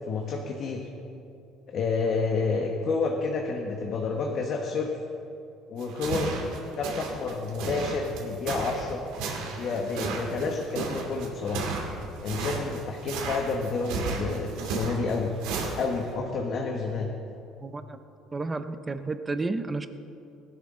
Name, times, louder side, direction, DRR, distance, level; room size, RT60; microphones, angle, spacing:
voice 1, 0.0-0.9 1.7-5.0 5.7-6.4 6.8-9.0 9.6-11.6 12.2-15.4 15.8-17.1, left 4 dB, 35° left, 1 dB, 1.0 m, -29 dB
sound 1, 5.8-16.1, right 4 dB, 85° right, 2.5 m, -34 dB
voice 2, 17.6-18.0 18.3-19.9, right 3 dB, 15° right, 10 dB, 0.5 m, -31 dB
19.5 x 12.0 x 3.7 m, 2.7 s
cardioid pair, 175°, 0 cm